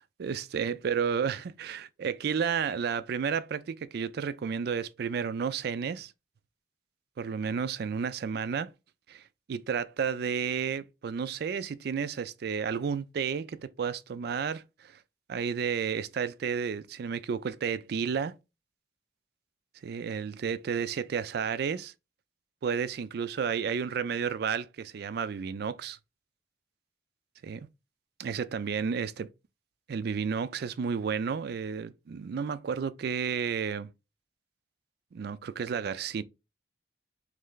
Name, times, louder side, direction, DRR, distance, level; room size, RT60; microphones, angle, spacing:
voice 1, 0.2-6.1 7.2-8.7 9.1-9.2 9.5-15.0 15.3-18.3 19.8-21.9 22.6-26.0 27.4-27.7 28.2-29.3 29.9-33.9 35.1-36.2, right 6 dB, 60° right, 0.4 m, -32 dB
3.2 x 3.2 x 3.8 m
head